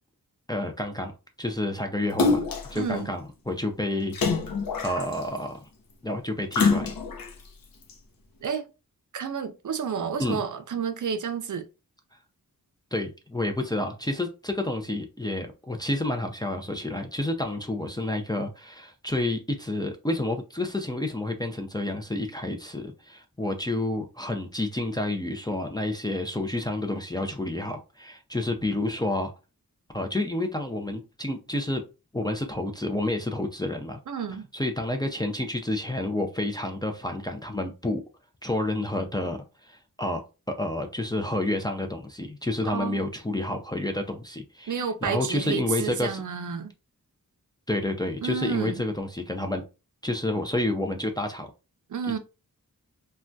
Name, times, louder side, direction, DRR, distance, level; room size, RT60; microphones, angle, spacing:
voice 1, 0.5-1.1 1.4-2.4 2.7-4.4 4.8-5.6 6.0-6.9 10.2-10.4 12.9-29.3 29.9-31.9 32.1-34.0 34.5-38.0 38.4-39.4 39.6-46.2 47.7-49.6 50.0-51.5, left 1 dB, 10° left, 0.4 m, -29 dB
Splash splatter, 2.2-2.8 4.1-5.4 6.5-7.3 7.9-8.0, left 4 dB, 75° left, 0.6 m, -25 dB
voice 2, 2.7-3.1 8.4-8.6 9.1-11.7 34.1-34.5 42.7-43.0 44.7-46.7 48.2-48.8 51.9-52.2, right 6 dB, 60° right, 0.5 m, -30 dB
3.3 x 2.2 x 2.5 m
wide cardioid pair, 95°, 35 cm